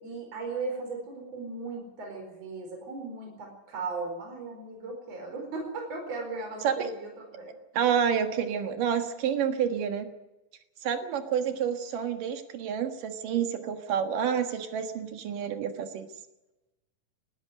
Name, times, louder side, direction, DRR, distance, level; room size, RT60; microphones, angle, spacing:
voice 1, 0.0-7.5, right 3 dB, 50° right, 2 dB, 5.7 m, -37 dB
voice 2, 7.7-10.1 10.8-16.1, right 8 dB, 85° right, 7 dB, 3.2 m, -29 dB
19.0 x 14.0 x 9.9 m, 1.0 s
omnidirectional pair, 3.7 m